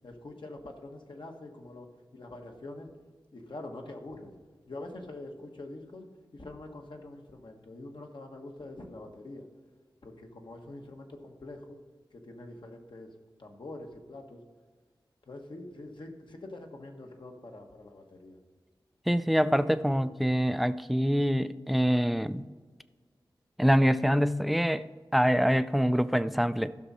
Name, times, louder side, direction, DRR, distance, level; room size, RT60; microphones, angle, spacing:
voice 1, 0.0-2.9 3.3-4.3 4.7-6.1 6.3-9.5 10.0-11.8 12.1-13.1 13.4-14.4 15.3-18.4, left 2 dB, 65° left, 2 dB, 1.5 m, -45 dB
voice 2, 19.1-22.5 23.6-24.9 25.1-26.7, equal, ahead, 12 dB, 0.4 m, -25 dB
15.0 x 6.2 x 4.2 m, 1.5 s
wide cardioid pair, 75°, 9 cm